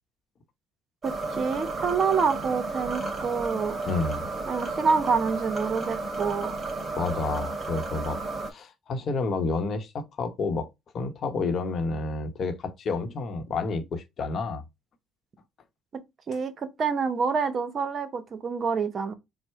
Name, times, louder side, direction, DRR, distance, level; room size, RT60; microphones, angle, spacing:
sound 1, 1.0-8.5, right 3 dB, 30° right, 2.0 m, -32 dB
voice 1, 1.0-3.8 4.5-6.5 16.3-19.1, right 5 dB, 45° right, 0.8 m, -27 dB
voice 2, 3.8-4.2 7.0-8.2 8.5-10.7 10.9-14.6, left 3 dB, 50° left, 0.9 m, -30 dB
4.5 x 2.1 x 4.4 m
supercardioid pair, 85°, 0 cm